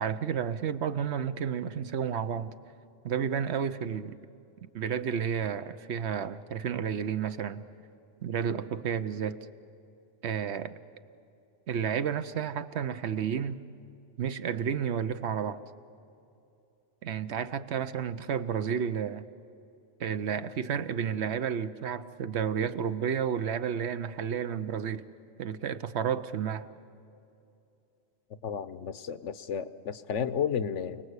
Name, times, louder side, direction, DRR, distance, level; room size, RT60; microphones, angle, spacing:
voice 1, 0.0-2.5 3.0-4.2 4.7-7.6 8.2-9.4 10.2-10.7 11.7-13.6 14.2-15.6 17.0-19.2 20.0-25.0 25.4-26.7, right 7 dB, 65° right, 12 dB, 1.0 m, -31 dB
voice 2, 28.4-31.0, left 7 dB, 80° left, 13 dB, 1.1 m, -32 dB
28.5 x 19.0 x 8.2 m, 2.7 s
omnidirectional pair, 1.2 m